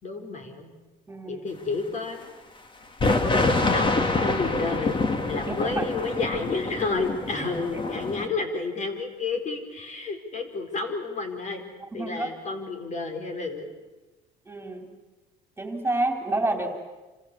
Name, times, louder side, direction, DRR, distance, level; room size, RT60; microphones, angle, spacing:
voice 1, 0.0-0.7 1.2-2.2 3.2-5.0 5.3-11.6 11.9-13.7, left 3 dB, 45° left, 5 dB, 4.9 m, -31 dB
voice 2, 1.1-1.5 5.5-5.8 7.4-7.5 11.9-12.3 14.5-14.9 15.6-16.7, right 2 dB, 15° right, 4 dB, 3.6 m, -29 dB
sound 1, 3.0-8.3, left 3 dB, 30° left, 2.5 m, -26 dB
28.0 x 26.0 x 7.2 m, 1.2 s
cardioid pair, 110°, 17 cm